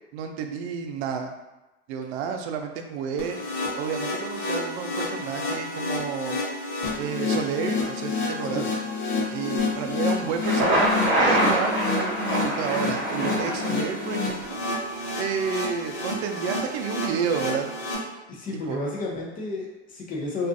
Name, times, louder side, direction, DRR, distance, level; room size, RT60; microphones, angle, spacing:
voice 1, 0.1-1.3 1.9-3.4 3.8-6.4 7.0-8.7 9.3-14.6 15.2-17.7 18.5-18.8, right 6 dB, 65° right, 5 dB, 0.5 m, -30 dB
sound 1, 3.2-18.0, left 3 dB, 65° left, 0.9 m, -29 dB
Thunder, 10.3-14.2, right 1 dB, 35° right, 1.0 m, -25 dB
voice 2, 18.3-20.5, left 2 dB, 25° left, -2 dB, 0.6 m, -31 dB
2.5 x 2.3 x 2.5 m, 1.0 s
hypercardioid pair, 95°, 35 cm